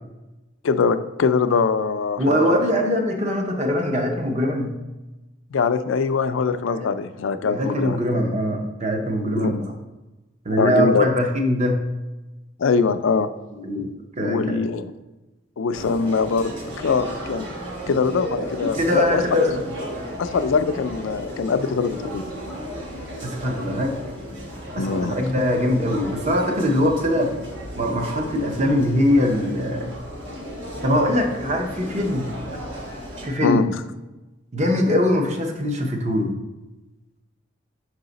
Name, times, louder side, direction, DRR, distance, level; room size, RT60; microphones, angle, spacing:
voice 1, 0.6-2.6 5.5-8.0 9.4-9.5 10.6-11.1 12.6-13.3 14.2-14.9 15.6-16.5 16.8-17.5 17.9-19.5 20.2-22.2 24.8-25.2 33.4-33.7, left 5 dB, 80° left, 11 dB, 0.4 m, -22 dB
voice 2, 2.2-4.7 6.7-6.9 7.4-9.7 10.4-11.8 13.5-13.9 14.2-14.6 18.6-19.6 23.2-23.9 24.7-27.3 27.7-29.9 30.8-32.3 33.2-33.7 34.5-36.3, left 1 dB, 35° right, 3 dB, 0.7 m, -22 dB
sound 1, 15.7-33.3, equal, 70° right, 1.3 m, -34 dB
5.7 x 4.7 x 4.0 m, 1.1 s
head